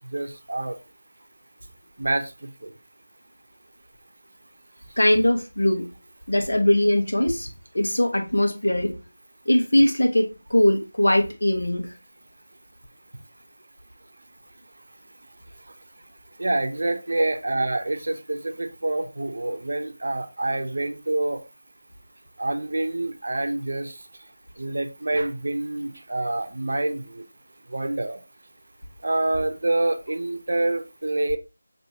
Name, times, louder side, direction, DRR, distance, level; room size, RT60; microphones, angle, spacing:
voice 1, 0.1-0.8 2.0-2.3 2.6-2.7 16.4-21.4 22.4-23.9 24.6-27.2 27.7-28.2 29.0-31.4, right 2 dB, 65° right, 0.6 m, -26 dB
voice 2, 5.0-5.9 6.3-7.5 7.7-8.9 9.5-11.9, left 1 dB, 85° left, 1.0 m, -21 dB
6.0 x 2.7 x 2.8 m
figure-of-eight pair, 170°, 0 cm